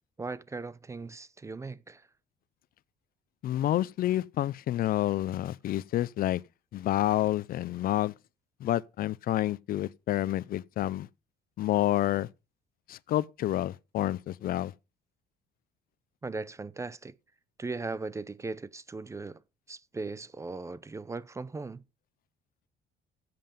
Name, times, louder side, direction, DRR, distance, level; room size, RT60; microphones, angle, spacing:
voice 1, 0.2-2.1 16.2-17.2 17.6-19.4 19.7-21.8, right 3 dB, 15° right, 0.6 m, -38 dB
voice 2, 3.4-6.4 6.7-8.1 8.6-11.1 11.6-12.3 12.9-14.7, left 13 dB, 60° left, 0.6 m, -29 dB
14.0 x 7.7 x 5.2 m
cardioid pair, 110°, 17 cm